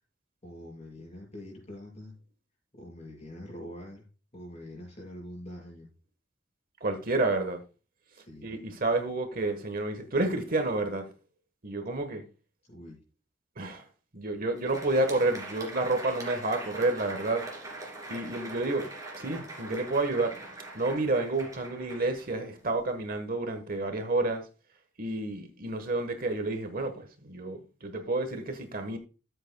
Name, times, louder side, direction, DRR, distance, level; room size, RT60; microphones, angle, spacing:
voice 1, 0.4-2.2 2.7-4.1 4.3-5.9 8.2-8.5 12.6-13.0, left 1 dB, 35° left, 5.7 m, -44 dB
voice 2, 6.8-7.6 8.4-11.0 11.6-12.2 13.6-13.8 14.1-17.4 18.1-18.9 19.2-20.3 20.7-24.4 25.0-29.0, right 2 dB, 45° right, 1.2 m, -30 dB
Crowd, 14.4-22.9, right 2 dB, 20° right, 2.6 m, -42 dB
14.0 x 8.1 x 2.2 m
head